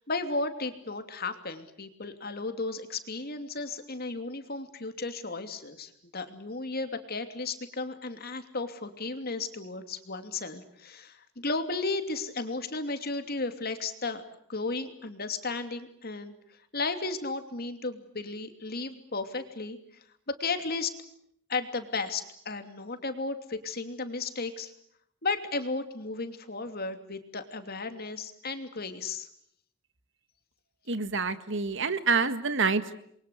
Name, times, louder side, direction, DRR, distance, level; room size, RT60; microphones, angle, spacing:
voice 1, 0.0-14.2 14.5-16.3 16.7-19.8 20.3-20.9 21.5-24.7 25.2-29.3, left 3 dB, 50° left, 8 dB, 2.9 m, -34 dB
voice 2, 30.9-32.9, right 4 dB, 60° right, 11 dB, 1.9 m, -27 dB
29.0 x 23.0 x 8.3 m, 0.70 s
head